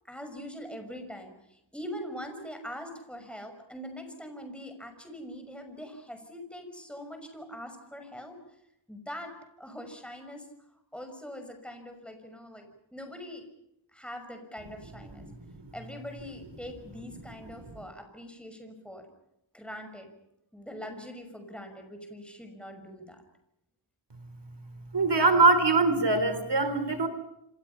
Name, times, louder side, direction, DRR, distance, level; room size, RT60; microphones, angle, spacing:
voice 1, 0.1-8.3 8.9-9.3 9.6-10.5 10.9-12.6 12.9-13.4 13.9-15.3 15.7-19.1 19.5-20.1 20.5-23.2, equal, ahead, 5 dB, 6.2 m, -42 dB
voice 2, 24.9-27.1, right 3 dB, 55° right, 10 dB, 3.7 m, -22 dB
29.0 x 26.0 x 5.7 m, 0.83 s
wide cardioid pair, 80°, 48 cm